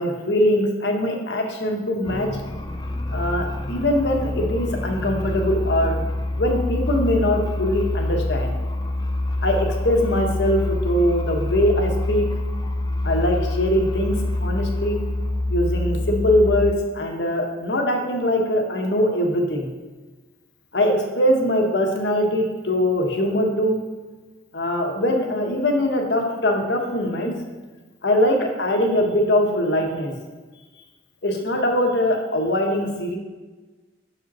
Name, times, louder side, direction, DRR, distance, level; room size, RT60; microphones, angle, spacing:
voice 1, 0.0-2.3 3.1-6.0 6.4-8.5 9.4-12.3 13.0-15.0 15.5-19.7 20.7-23.8 24.5-27.3 28.0-30.1 31.2-33.2, left 1 dB, 65° left, 2 dB, 1.1 m, -22 dB
sound 1, 2.0-16.7, left 1 dB, 20° left, 0.5 m, -26 dB
6.5 x 5.1 x 4.2 m, 1.3 s
head